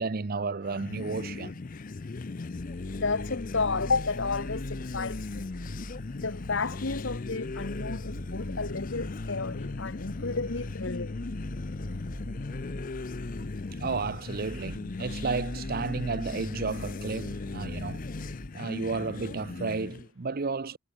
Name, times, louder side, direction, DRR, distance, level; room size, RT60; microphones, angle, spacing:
voice 1, 0.0-1.6 13.7-18.1 18.5-20.8, right 4 dB, 45° right, 0.6 m, -32 dB
sound 1, 0.6-20.1, left 3 dB, 40° left, 0.5 m, -38 dB
sound 2, 2.6-18.5, equal, 65° right, 4.9 m, -43 dB
voice 2, 2.9-5.4 6.1-11.1, left 4 dB, 55° left, 1.2 m, -32 dB
head